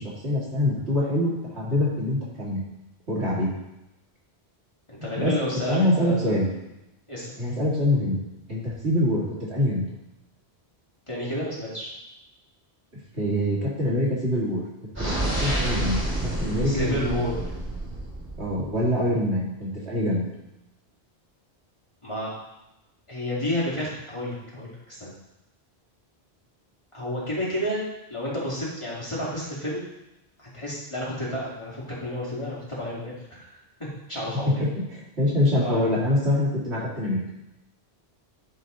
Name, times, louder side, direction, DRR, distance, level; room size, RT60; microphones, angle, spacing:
voice 1, 0.0-2.6 3.1-3.5 5.0-5.3 5.7-6.5 7.4-8.2 8.5-9.8 13.1-14.6 15.0-16.0 16.2-17.3 18.4-20.2 34.3-37.2, left 1 dB, 80° right, -6 dB, 2.5 m, -25 dB
voice 2, 4.9-6.3 7.1-7.3 11.1-11.9 16.6-17.4 22.0-22.3 23.1-25.1 26.9-27.8 28.1-29.8 30.4-33.1 34.1-34.7 35.6-36.0, left 1 dB, 25° left, -7 dB, 2.5 m, -30 dB
sound 1, 14.9-18.8, right 1 dB, 15° right, 2.2 m, -29 dB
11.5 x 4.0 x 3.9 m, 0.91 s
omnidirectional pair, 1.1 m